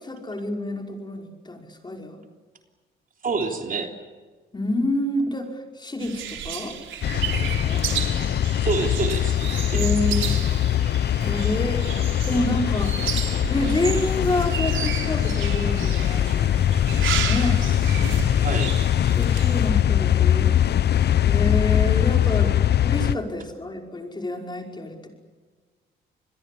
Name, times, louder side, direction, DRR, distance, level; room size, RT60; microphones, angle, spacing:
voice 1, 0.0-2.2 4.5-6.8 7.4-7.9 9.7-10.2 11.2-11.8 12.2-13.1 13.5-16.5 16.9-17.7 19.1-20.6 21.3-25.1, left 1 dB, 20° left, 2 dB, 5.4 m, -28 dB
voice 2, 3.2-3.9 8.6-9.4 9.7-9.9 10.3-10.4 18.4-19.1, right 4 dB, 45° right, 4 dB, 3.6 m, -28 dB
sound 1, 6.0-19.7, right 8 dB, 75° right, 3.8 m, -33 dB
sound 2, 7.0-23.2, left 11 dB, 55° left, 0.8 m, -22 dB
27.0 x 21.5 x 8.6 m, 1.4 s
cardioid pair, 90°, 20 cm